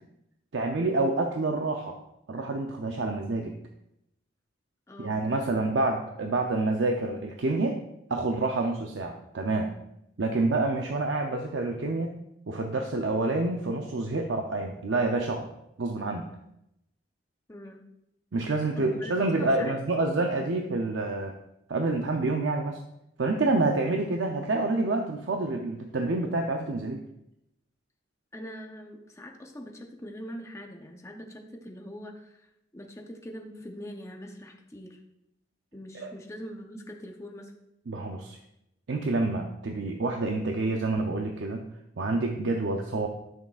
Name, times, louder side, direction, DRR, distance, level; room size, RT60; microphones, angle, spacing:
voice 1, 0.5-2.0 2.3-3.5 5.0-7.8 8.1-9.7 10.2-12.2 12.5-15.5 15.8-16.3 18.3-21.3 21.7-22.8 23.2-27.0 35.9-36.1 37.9-38.4 38.9-41.6 42.0-43.1, right 2 dB, 85° right, 3 dB, 0.6 m, -28 dB
voice 2, 4.9-5.2 17.5-17.8 18.7-19.7 20.0-20.1 28.3-32.5 32.7-35.0 35.7-37.5 42.0-42.1, equal, 15° left, 3 dB, 0.7 m, -43 dB
11.0 x 6.3 x 2.4 m, 0.83 s
head